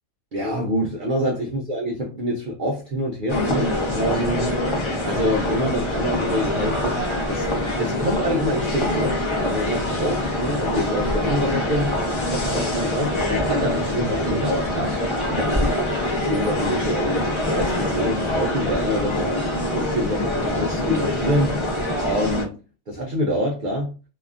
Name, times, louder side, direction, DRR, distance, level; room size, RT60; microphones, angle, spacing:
voice 1, 0.3-4.4 5.0-7.0 7.3-7.5 7.8-9.2 9.4-12.0 12.3-15.0 15.3-15.9 16.2-21.6 22.0-22.5 22.9-24.0, equal, 60° right, 0.5 m, -26 dB
sound 1, 3.3-22.4, left 1 dB, 30° left, 0.6 m, -24 dB
2.7 x 2.4 x 2.4 m
omnidirectional pair, 1.4 m